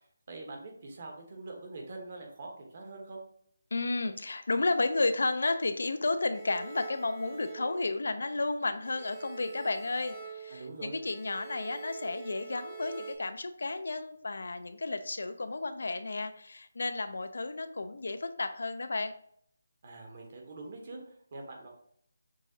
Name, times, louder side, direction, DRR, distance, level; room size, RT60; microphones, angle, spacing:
voice 1, 0.3-3.2 10.5-11.0 19.8-21.7, right 2 dB, 45° right, 2 dB, 1.1 m, -44 dB
voice 2, 3.7-19.1, left 3 dB, 70° left, 10 dB, 0.4 m, -32 dB
sound 1, 6.3-8.5 8.8-13.2, right 6 dB, 15° right, 0.9 m, -47 dB
6.1 x 2.6 x 2.7 m, 0.67 s
figure-of-eight pair, 160°, 0 cm